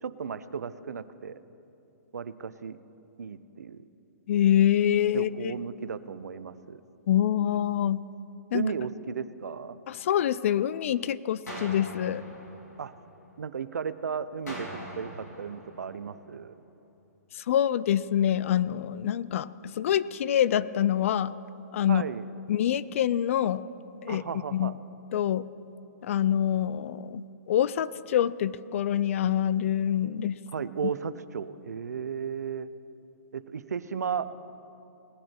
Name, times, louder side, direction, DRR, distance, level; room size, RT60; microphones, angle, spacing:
voice 1, 0.0-1.4 2.1-2.8 3.2-3.8 5.1-6.8 8.5-9.8 12.8-12.9 13.4-16.5 21.9-22.2 24.1-24.7 30.5-32.7 33.3-34.3, right 6 dB, 75° right, 14 dB, 0.6 m, -34 dB
voice 2, 4.3-5.5 7.1-8.0 8.5-8.7 9.9-12.2 17.3-21.3 21.7-22.0 22.5-23.6 24.0-24.2 24.5-24.7 25.1-25.5 26.0-30.4, left 10 dB, 55° left, 18 dB, 0.4 m, -26 dB
sound 1, 11.5-13.5 14.5-16.5, equal, 90° left, 3.9 m, -42 dB
19.0 x 9.9 x 4.5 m, 2.7 s
hypercardioid pair, 130°, 9 cm